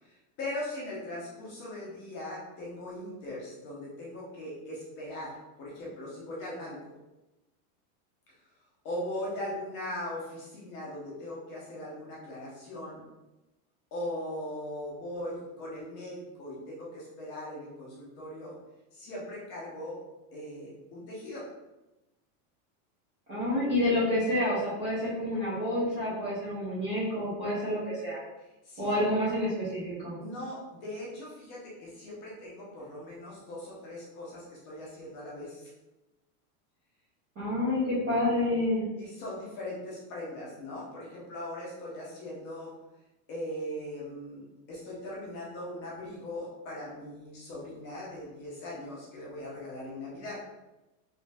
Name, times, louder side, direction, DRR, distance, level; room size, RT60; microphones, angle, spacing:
voice 1, 0.0-6.9 8.8-13.0 13.9-18.6 18.9-20.0 20.3-21.5 28.4-29.0 30.2-35.7 39.0-42.7 43.3-50.4, left 1 dB, 25° left, -5 dB, 0.6 m, -40 dB
voice 2, 23.3-28.2 28.8-30.1 37.4-38.8, left 1 dB, 15° right, -12 dB, 0.4 m, -28 dB
3.2 x 2.5 x 3.2 m, 1.0 s
supercardioid pair, 180°, 45 cm